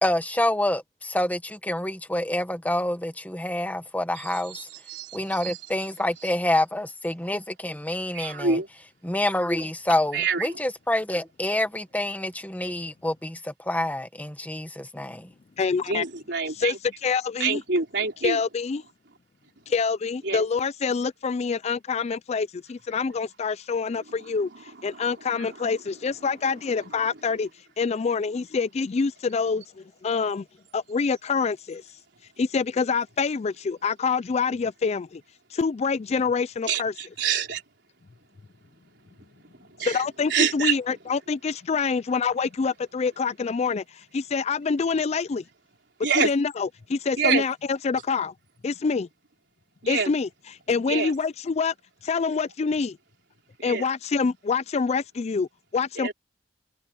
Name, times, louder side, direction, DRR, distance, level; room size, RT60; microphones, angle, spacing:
voice 1, 0.0-4.7 5.1-8.6 9.0-15.3, left 1 dB, 10° left, 1.5 m, -27 dB
voice 2, 4.1-5.6 6.2-6.3 8.1-8.7 10.1-10.6 15.9-16.8 17.4-18.4 20.2-20.4 24.9-25.1 25.3-25.6 36.7-37.6 39.8-40.0 40.3-40.7 46.0-46.3 47.2-47.4 49.8-50.1 50.9-51.1 53.6-53.9 56.0-56.1, right 5 dB, 70° right, 4.4 m, -27 dB
voice 3, 15.6-16.0 16.6-16.7 17.0-17.6 18.2-18.8 19.7-27.5 27.8-30.4 30.7-31.8 32.4-35.2 35.5-36.9 39.8-43.8 44.1-45.4 46.2-48.3 48.6-49.1 49.9-50.3 50.7-51.7 52.0-53.0 53.6-55.5 55.7-56.1, left 5 dB, 35° left, 0.4 m, -26 dB
head